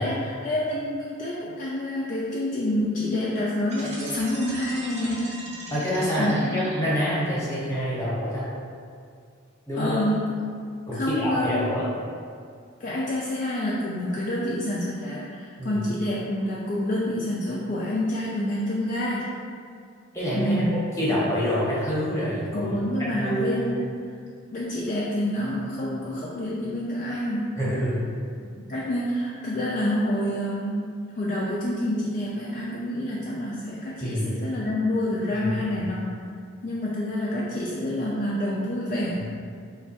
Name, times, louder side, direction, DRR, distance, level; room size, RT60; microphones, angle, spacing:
voice 1, 0.0-5.4 6.2-6.3 9.7-10.3 10.9-11.8 12.8-19.3 20.3-20.8 22.5-23.9 24.5-27.5 28.7-36.1 36.6-39.2, left 1 dB, 40° left, -6 dB, 0.3 m, -27 dB
sound 1, 3.7-7.2, right 2 dB, 35° right, 0.6 m, -39 dB
voice 2, 5.7-8.5 9.7-10.0 10.9-11.8 15.6-15.8 20.1-20.5 21.0-22.7 23.0-23.6 27.6-28.1 34.0-34.3 35.3-35.8 39.2-39.3, equal, 15° left, -8 dB, 0.9 m, -26 dB
3.3 x 2.3 x 4.0 m, 2.2 s
head